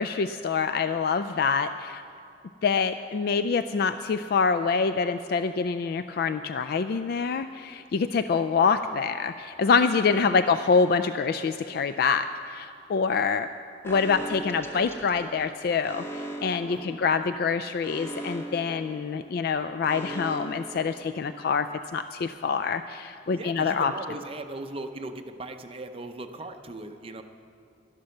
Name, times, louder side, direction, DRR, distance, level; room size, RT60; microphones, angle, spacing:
voice 1, 0.0-2.0 2.6-13.5 13.8-21.7 21.9-23.9, left 5 dB, 55° left, 11 dB, 0.3 m, -26 dB
voice 2, 10.2-10.6 16.7-17.0 23.3-27.2, right 2 dB, 30° right, 6 dB, 0.7 m, -39 dB
Alarm, 13.8-21.6, right 1 dB, 15° left, 0.8 m, -40 dB
11.5 x 11.5 x 6.5 m, 2.4 s
head